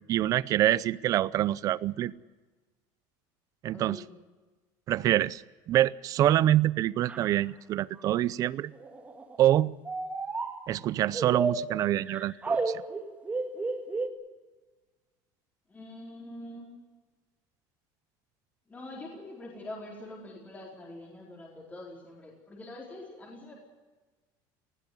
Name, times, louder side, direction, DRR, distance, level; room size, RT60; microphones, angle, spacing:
voice 1, 0.1-2.1 3.6-4.0 4.9-5.4 5.7-8.7 9.4-9.7 10.7-12.8, right 13 dB, 35° right, 19 dB, 0.6 m, -26 dB
voice 2, 3.7-4.1 15.7-16.7 18.7-23.5, left 1 dB, 15° left, -2 dB, 4.4 m, -44 dB
sound 1, 7.1-7.3 8.0-8.1 8.7-9.4 9.8-10.7 11.1-14.1, right 3 dB, 15° right, 2.0 m, -32 dB
19.5 x 15.5 x 9.6 m, 1.3 s
cardioid pair, 155°, 10 cm